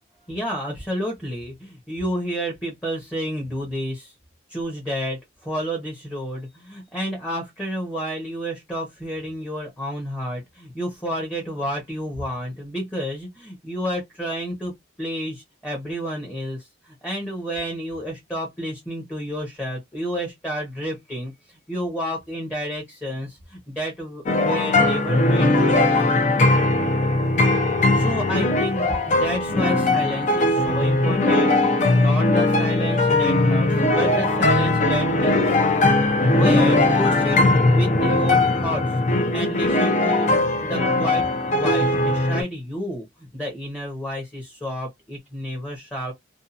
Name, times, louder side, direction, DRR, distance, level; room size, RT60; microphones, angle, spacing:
voice 1, 0.3-4.1 4.5-26.2 27.9-37.4 37.7-38.8 39.3-40.3 40.6-46.1, equal, 10° left, 0.8 m, -30 dB
sound 1, 24.3-42.4, left 2 dB, 40° left, 0.5 m, -19 dB
2.7 x 2.3 x 2.4 m
head